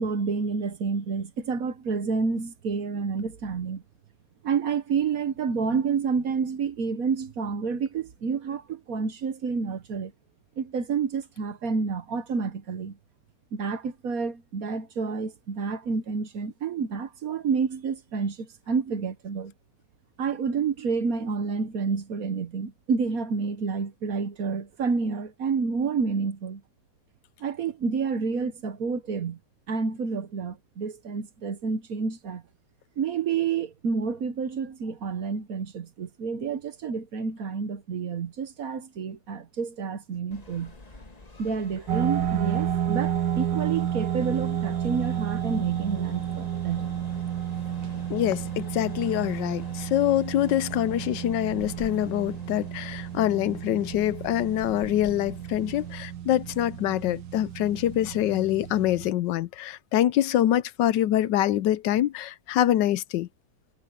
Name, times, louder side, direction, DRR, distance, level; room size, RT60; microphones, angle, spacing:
voice 1, 0.0-3.8 4.4-10.1 10.6-13.0 13.5-19.5 20.2-26.6 27.4-29.4 29.7-32.4 33.0-40.7 41.4-46.9, right 5 dB, 55° right, 1.4 m, -29 dB
sound 1, 40.3-55.9, left 2 dB, 25° left, 1.5 m, -48 dB
sound 2, 41.9-59.1, right 10 dB, 80° right, 1.7 m, -31 dB
voice 2, 48.1-63.3, left 12 dB, 80° left, 1.3 m, -25 dB
omnidirectional pair, 1.9 m